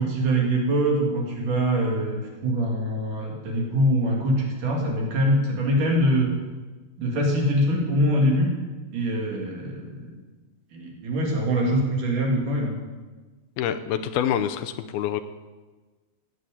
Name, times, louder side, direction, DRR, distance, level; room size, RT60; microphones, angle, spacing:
voice 1, 0.0-6.3 7.0-8.5 8.9-10.1 10.7-12.7, equal, 55° right, -1 dB, 4.3 m, -23 dB
voice 2, 13.6-15.2, left 9 dB, 80° left, 9 dB, 2.6 m, -26 dB
16.0 x 9.4 x 8.5 m, 1.3 s
omnidirectional pair, 4.5 m